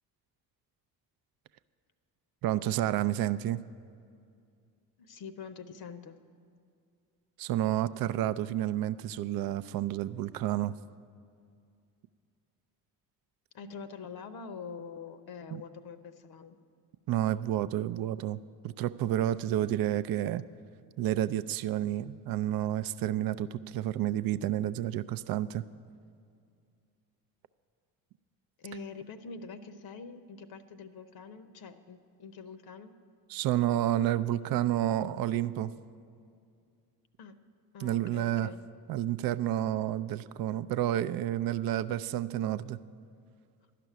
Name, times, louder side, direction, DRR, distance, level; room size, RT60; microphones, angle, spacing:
voice 1, 2.4-3.6 7.4-10.8 15.5-15.6 17.1-20.4 21.0-25.6 33.3-35.7 37.8-38.5 38.9-42.8, right 12 dB, 50° right, 15 dB, 0.5 m, -30 dB
voice 2, 5.0-6.2 13.5-16.6 28.6-32.9 37.2-37.4 37.7-38.6, left 5 dB, 55° left, 10 dB, 0.7 m, -45 dB
11.5 x 5.9 x 9.2 m, 2.4 s
hypercardioid pair, 55°, 45 cm